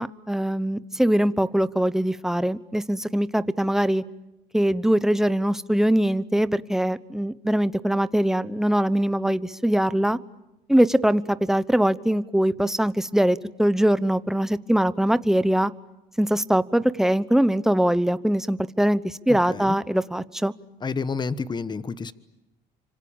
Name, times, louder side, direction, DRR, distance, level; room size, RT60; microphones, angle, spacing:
voice 1, 0.0-4.0 4.5-10.2 10.7-15.7 16.2-20.5, right 1 dB, 5° right, 15 dB, 1.0 m, -22 dB
voice 2, 19.3-19.8 20.8-22.1, left 4 dB, 25° left, 14 dB, 1.2 m, -30 dB
30.0 x 26.0 x 7.2 m, 0.97 s
cardioid pair, 110°, 17 cm